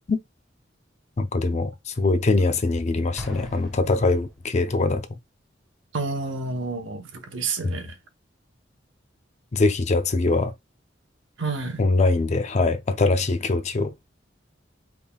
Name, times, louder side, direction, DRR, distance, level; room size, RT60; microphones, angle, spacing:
voice 1, 1.2-5.1 9.5-10.5 11.8-13.9, left 3 dB, 40° left, 0.5 m, -22 dB
Explosion, 3.2-4.8, left 1 dB, ahead, 1.2 m, -41 dB
voice 2, 5.9-7.9 11.4-11.8, right 3 dB, 90° right, 0.8 m, -30 dB
3.8 x 3.5 x 2.2 m
head